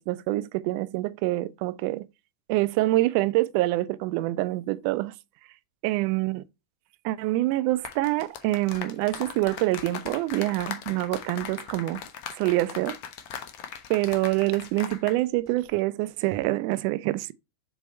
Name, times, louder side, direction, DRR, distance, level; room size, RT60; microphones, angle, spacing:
voice 1, 0.0-2.1 2.5-5.1 5.8-6.4 7.0-12.0 12.4-13.0 13.9-17.3, right 18 dB, 45° right, 0.5 m, -26 dB
sound 1, 7.7-15.2 15.5-15.7, left 8 dB, 45° left, 1.0 m, -39 dB
7.5 x 3.5 x 4.1 m
figure-of-eight pair, 90°, 0 cm